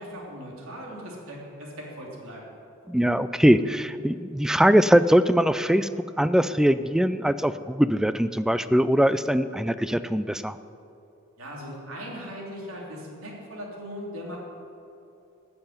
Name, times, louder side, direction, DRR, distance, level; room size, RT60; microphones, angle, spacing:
voice 1, 0.0-2.5 11.4-14.4, equal, 85° right, -2 dB, 3.2 m, -39 dB
voice 2, 2.9-5.9 6.2-10.6, equal, 5° right, 13 dB, 0.3 m, -21 dB
13.5 x 6.8 x 9.5 m, 2.9 s
head